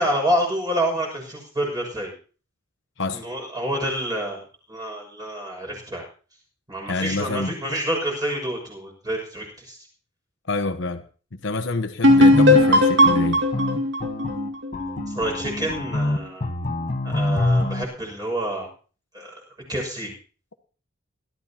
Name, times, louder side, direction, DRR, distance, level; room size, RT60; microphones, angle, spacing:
voice 1, 0.0-2.1 3.1-4.4 4.7-6.0 6.7-9.8 15.1-16.5 17.0-18.7 19.1-19.4 19.7-20.1, right 1 dB, 20° right, 6.5 m, -28 dB
voice 2, 6.9-7.6 10.5-11.0 11.3-13.4, left 2 dB, 65° left, 1.1 m, -27 dB
sound 1, 12.0-15.6, left 1 dB, 65° right, 2.3 m, -17 dB
sound 2, 12.1-17.8, left 2 dB, 40° left, 1.3 m, -25 dB
21.0 x 13.5 x 2.9 m
head